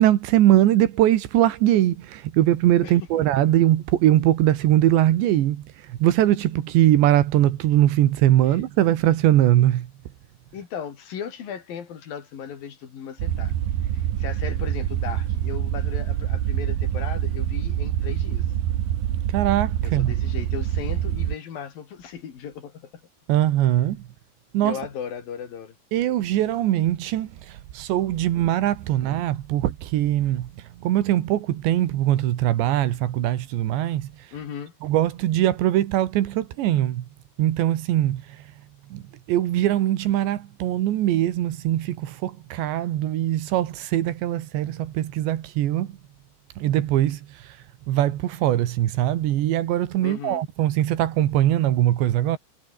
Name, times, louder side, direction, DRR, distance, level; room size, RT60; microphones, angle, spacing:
voice 1, 0.0-9.9 19.3-20.1 23.3-24.0 24.5-24.8 25.9-34.1 34.8-37.1 37.4-38.4 38.9-39.0 39.3-46.0 46.6-47.6 47.9-52.4, right 13 dB, 85° right, 3.9 m, -21 dB
voice 2, 10.5-13.5 13.9-18.5 19.8-22.9 24.6-25.7 34.3-34.7 50.0-50.4, left 8 dB, 55° left, 4.4 m, -36 dB
sound 1, 13.2-21.3, right 11 dB, 65° right, 3.2 m, -25 dB
omnidirectional pair, 5.0 m